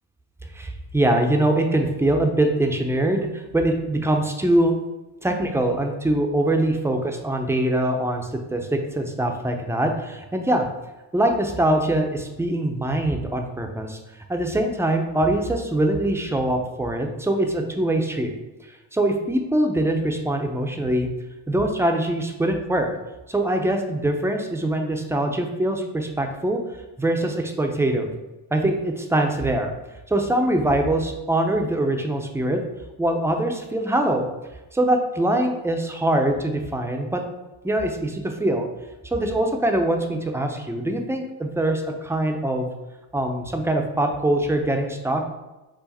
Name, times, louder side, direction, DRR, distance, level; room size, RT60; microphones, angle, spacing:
voice 1, 0.5-4.7 5.2-10.7 11.1-14.0 14.3-18.3 18.9-21.1 21.5-22.9 23.3-26.6 27.0-28.1 28.5-29.7 30.1-32.6 33.0-34.2 34.7-37.2 37.6-38.7 39.1-42.7 43.1-45.2, right 1 dB, 5° right, 4 dB, 0.6 m, -23 dB
4.7 x 2.5 x 4.2 m, 1.1 s
supercardioid pair, 80°, 44 cm